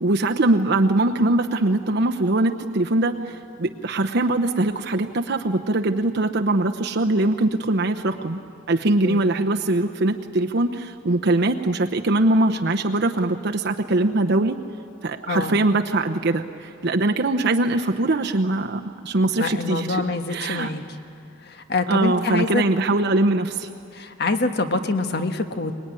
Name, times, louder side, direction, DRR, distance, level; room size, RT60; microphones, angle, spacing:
voice 1, 0.0-8.4 8.7-14.6 15.0-20.0 20.3-20.7 21.9-23.7, right 2 dB, 55° right, 4 dB, 0.9 m, -22 dB
voice 2, 15.3-15.6 19.4-20.8 21.5-22.6 23.9-25.8, left 3 dB, 55° left, 8 dB, 1.4 m, -25 dB
24.5 x 20.5 x 9.8 m, 2.5 s
head